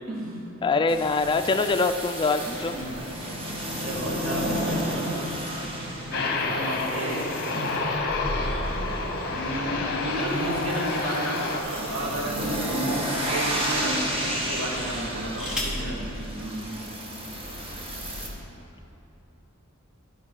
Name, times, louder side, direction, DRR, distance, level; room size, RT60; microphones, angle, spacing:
voice 1, 0.1-0.5 2.7-3.0 3.8-4.9 6.1-7.8 9.3-16.8, right 1 dB, 70° right, -5 dB, 2.0 m, -32 dB
voice 2, 0.6-2.8, left 3 dB, 20° left, 7 dB, 0.3 m, -24 dB
sound 1, 0.9-18.3, equal, 25° right, 1.2 m, -32 dB
Aircraft, 6.1-11.6, left 3 dB, 50° left, 0.9 m, -29 dB
sound 2, 15.2-15.9 17.1-17.2 17.5-17.9, left 1 dB, 5° right, 1.6 m, -36 dB
12.0 x 5.4 x 4.8 m, 2.9 s
head